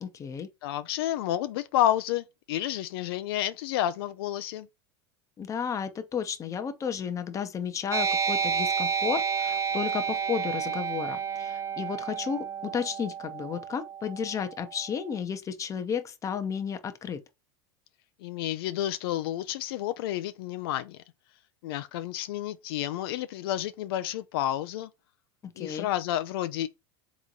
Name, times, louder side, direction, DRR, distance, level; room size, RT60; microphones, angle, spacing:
voice 1, 0.0-0.5 5.4-17.2 25.4-25.9, left 7 dB, 25° left, 0.7 m, -33 dB
voice 2, 0.6-4.7 18.2-21.0 21.6-24.9 25.6-26.7, left 13 dB, 75° left, 0.5 m, -30 dB
sound 1, 7.9-15.0, right 6 dB, 25° right, 0.5 m, -30 dB
3.6 x 3.0 x 3.9 m
supercardioid pair, 115°, 13 cm